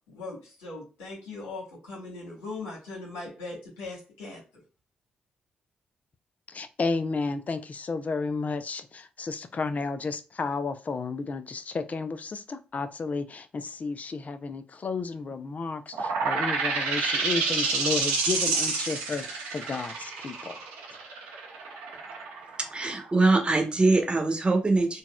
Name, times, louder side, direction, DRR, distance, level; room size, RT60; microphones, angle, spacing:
voice 1, 0.1-4.4, left 3 dB, 85° left, -3 dB, 1.5 m, -39 dB
voice 2, 6.5-20.5, left 4 dB, 45° left, 11 dB, 0.5 m, -32 dB
sound 1, 15.9-23.3, right 4 dB, 90° right, 0.9 m, -28 dB
voice 3, 22.7-25.0, right 3 dB, 30° right, 4 dB, 1.0 m, -23 dB
3.9 x 2.4 x 2.2 m, 0.35 s
hypercardioid pair, 45°, 4 cm